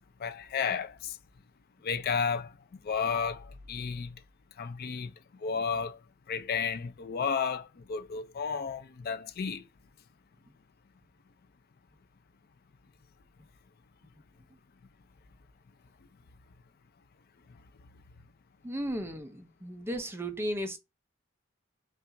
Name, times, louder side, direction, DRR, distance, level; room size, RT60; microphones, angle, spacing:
voice 1, 0.2-1.2 1.8-2.5 2.8-4.2 4.6-5.1 5.4-6.0 6.3-9.7, left 6 dB, 50° left, 0.4 m, -32 dB
voice 2, 18.6-20.8, equal, 10° right, 0.5 m, -35 dB
5.5 x 2.4 x 2.5 m
head